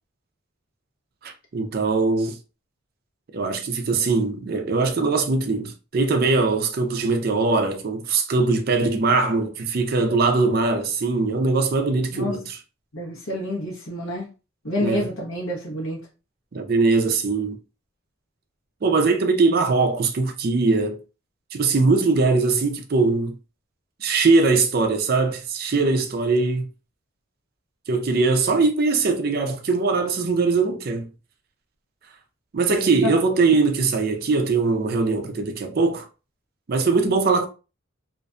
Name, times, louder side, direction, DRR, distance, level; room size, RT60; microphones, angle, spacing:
voice 1, 1.2-2.4 3.3-12.6 14.8-15.1 16.5-17.6 18.8-21.0 21.5-23.4 24.0-26.7 27.9-31.1 32.5-36.1 36.7-37.5, right 3 dB, 45° right, 0.4 m, -21 dB
voice 2, 12.9-14.3 14.6-16.0 33.0-33.2, left 1 dB, 80° left, 0.8 m, -28 dB
2.5 x 2.2 x 2.4 m
head